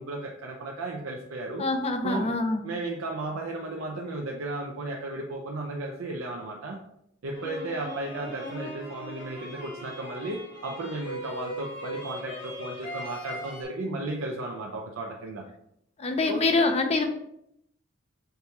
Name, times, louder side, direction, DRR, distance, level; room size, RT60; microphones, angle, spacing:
voice 1, 0.0-1.7 2.0-2.3 2.6-6.8 7.2-15.5 16.2-16.4, right 2 dB, 75° right, 0 dB, 0.5 m, -34 dB
voice 2, 1.6-2.6 16.0-17.1, left 3 dB, 30° left, 6 dB, 0.5 m, -25 dB
sound 1, 7.3-13.6, equal, 60° left, 1.2 m, -39 dB
6.6 x 2.3 x 2.8 m, 0.76 s
head